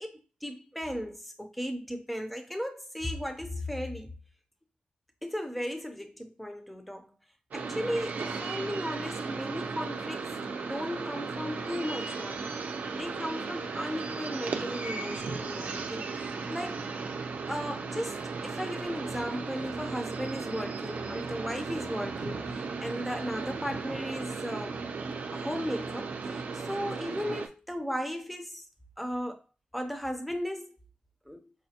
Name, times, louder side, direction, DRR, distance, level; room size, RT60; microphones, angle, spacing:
voice 1, 0.0-4.1 5.2-7.1 7.5-12.4 12.9-16.1 16.5-16.8 17.5-18.2 18.4-24.8 25.3-26.4 26.7-28.6 29.0-29.4 29.7-30.7 31.3-31.5, equal, ahead, 0.5 m, -36 dB
sound 1, 7.5-27.5, right 4 dB, 60° right, 0.5 m, -36 dB
4.9 x 2.1 x 2.8 m
wide cardioid pair, 135°, 3 cm